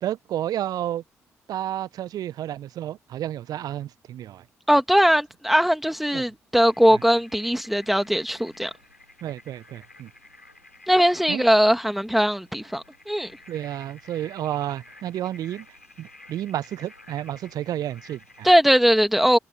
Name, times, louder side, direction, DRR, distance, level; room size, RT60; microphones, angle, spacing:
voice 1, 0.0-1.0 1.5-4.4 6.1-6.2 6.9-7.0 9.2-10.1 11.3-11.4 13.5-15.7 16.0-18.5, right 12 dB, 55° right, 1.3 m, -31 dB
voice 2, 4.7-8.7 10.9-13.3 18.4-19.4, equal, ahead, 3.0 m, -20 dB
sound 1, 6.5-18.5, left 2 dB, 90° left, 4.6 m, -51 dB
figure-of-eight pair, 40°, 8 cm